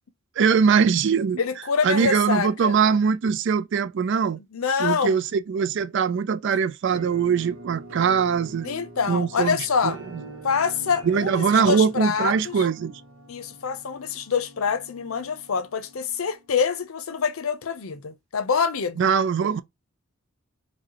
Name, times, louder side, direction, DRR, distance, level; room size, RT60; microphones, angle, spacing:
voice 1, 0.4-1.4 1.8-4.4 4.8-8.7 9.1-9.6 9.8-9.9 11.0-13.0 19.0-19.6, right 6 dB, 60° right, 0.4 m, -22 dB
voice 2, 1.4-2.7 4.5-5.2 8.6-10.0 10.4-12.7 13.3-19.0, left 6 dB, 85° left, 0.6 m, -26 dB
Musical instrument, 6.9-16.7, right 2 dB, 75° right, 0.9 m, -44 dB
4.8 x 2.2 x 2.9 m
head